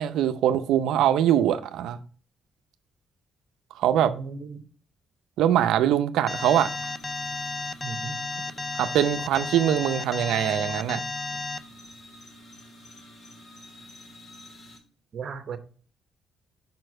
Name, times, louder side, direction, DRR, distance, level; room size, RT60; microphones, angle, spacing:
voice 1, 0.0-2.0 3.8-4.1 5.4-6.7 8.8-11.0, right 11 dB, 85° right, 0.5 m, -22 dB
voice 2, 4.0-4.6 7.8-8.2 15.1-15.6, right 5 dB, 55° right, 0.9 m, -36 dB
sound 1, 6.3-14.8, left 1 dB, 50° left, 2.7 m, -48 dB
Alarm, 6.3-11.6, left 3 dB, 20° left, 0.4 m, -33 dB
5.1 x 4.6 x 6.2 m
cardioid pair, 90°, 0 cm